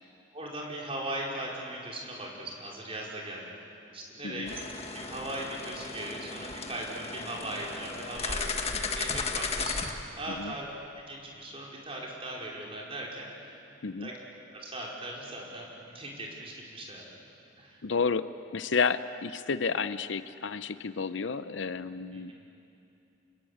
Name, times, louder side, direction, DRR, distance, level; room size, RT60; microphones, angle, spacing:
voice 1, 0.3-3.5 3.9-4.6 4.9-10.7 11.1-13.6 14.0-14.1 14.5-17.0 17.6-17.8 22.1-22.3, right 1 dB, 30° right, -3 dB, 5.0 m, -39 dB
sound 1, 4.5-9.9, left 4 dB, 30° left, 1.5 m, -35 dB
voice 2, 17.8-22.3, left 5 dB, 65° left, 13 dB, 0.7 m, -31 dB
28.5 x 21.5 x 8.7 m, 2.7 s
head